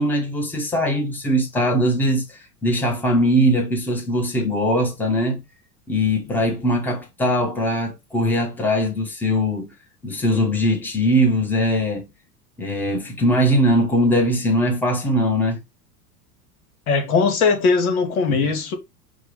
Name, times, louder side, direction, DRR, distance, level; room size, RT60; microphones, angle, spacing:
voice 1, 0.0-5.4 5.9-9.7 10.0-12.1 12.6-15.6 18.3-18.5, equal, 5° left, 1.1 m, -21 dB
voice 2, 16.9-18.8, left 4 dB, 65° left, 1.4 m, -19 dB
4.7 x 2.3 x 4.7 m
figure-of-eight pair, 80°, 47 cm